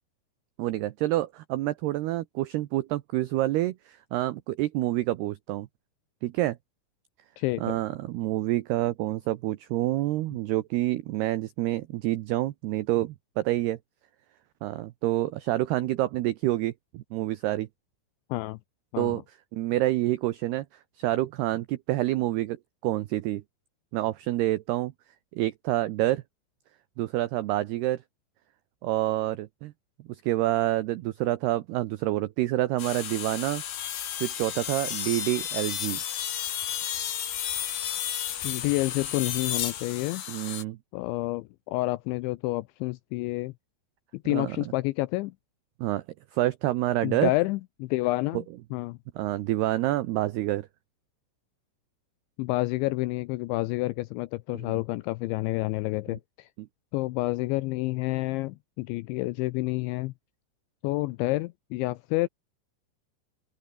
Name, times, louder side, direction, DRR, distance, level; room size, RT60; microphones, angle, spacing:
voice 1, 0.6-5.7 6.2-6.6 7.6-13.8 14.6-17.7 19.0-19.2 19.5-20.7 21.0-22.6 22.8-23.4 23.9-24.9 25.3-26.2 27.0-28.0 28.8-29.7 30.1-33.6 34.2-36.0 40.3-40.8 44.3-44.6 45.8-46.0 46.3-47.3 49.2-50.7 54.5-54.7 56.6-56.7, right 16 dB, 85° right, 2.3 m, -27 dB
voice 2, 7.4-7.8 18.3-18.6 18.9-19.2 38.4-40.2 40.9-43.5 44.1-45.3 47.0-48.5 48.7-49.0 52.4-56.5 56.9-60.1 60.8-62.3, left 20 dB, 85° left, 2.6 m, -29 dB
sound 1, 32.8-40.6, left 10 dB, 55° left, 3.4 m, -32 dB
open air
omnidirectional pair, 5.9 m